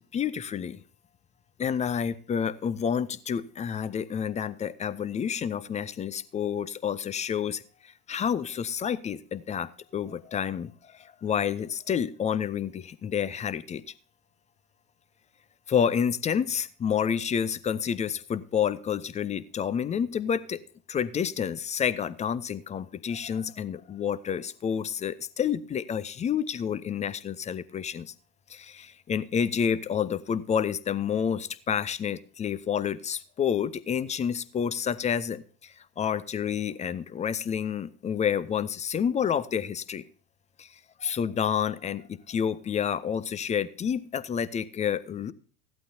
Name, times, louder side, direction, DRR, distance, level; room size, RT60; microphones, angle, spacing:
voice 1, 0.1-0.8 1.6-13.8 15.7-20.6 20.9-28.1 28.5-40.0 40.6-45.3, left 8 dB, 15° left, 17 dB, 0.5 m, -29 dB
15.5 x 12.0 x 2.7 m, 0.42 s
figure-of-eight pair, 75°, 47 cm